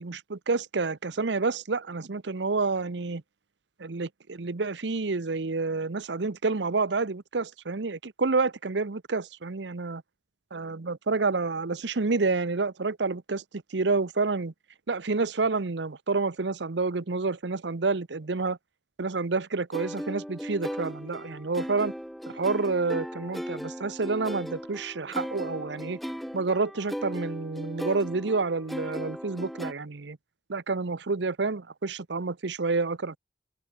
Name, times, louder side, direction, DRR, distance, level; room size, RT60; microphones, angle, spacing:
voice 1, 0.0-3.2 3.8-10.0 10.5-13.4 13.7-14.5 14.9-18.6 19.0-21.9 22.3-26.0 26.3-30.2 30.5-33.2, right 3 dB, 80° right, 0.9 m, -29 dB
sound 1, 19.7-29.7, equal, ahead, 1.2 m, -37 dB
open air
head